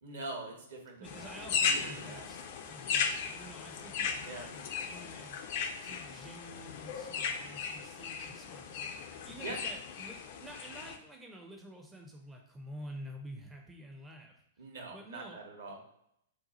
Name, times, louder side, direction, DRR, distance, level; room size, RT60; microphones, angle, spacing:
voice 1, 0.0-1.4 1.7-2.2 4.3-4.5 9.4-9.6 14.6-15.8, right 2 dB, 60° right, 1 dB, 0.9 m, -43 dB
sound 1, 1.0-11.0, left 6 dB, 50° left, 0.4 m, -36 dB
voice 2, 1.0-2.4 2.7-5.4 5.8-8.8 9.2-14.3 14.9-15.4 15.7-15.8, equal, 10° right, 1 dB, 0.4 m, -49 dB
2.6 x 2.3 x 4.0 m, 0.75 s
figure-of-eight pair, 105°, 0 cm